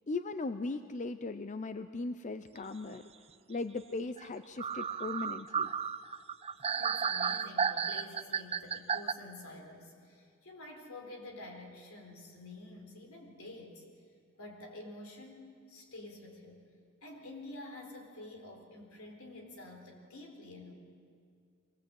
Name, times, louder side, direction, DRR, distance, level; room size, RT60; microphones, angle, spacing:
voice 1, 0.1-3.0 3.5-5.7, left 3 dB, 35° left, 10 dB, 0.6 m, -38 dB
sound 1, 4.2-4.3 4.6-9.1, right 6 dB, 30° right, 0.5 m, -33 dB
voice 2, 6.6-13.8 14.4-16.7 17.0-20.7, left 2 dB, 80° left, 2 dB, 4.0 m, -49 dB
23.5 x 19.0 x 7.9 m, 2.2 s
head